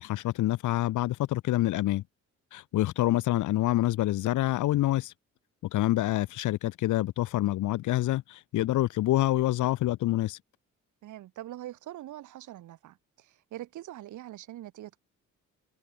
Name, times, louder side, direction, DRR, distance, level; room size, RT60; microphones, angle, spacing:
voice 1, 0.0-2.0 2.5-5.1 5.7-10.4, left 15 dB, 80° left, 1.0 m, -27 dB
voice 2, 11.0-15.0, right 13 dB, 80° right, 2.2 m, -43 dB
cardioid pair, 90°, 30 cm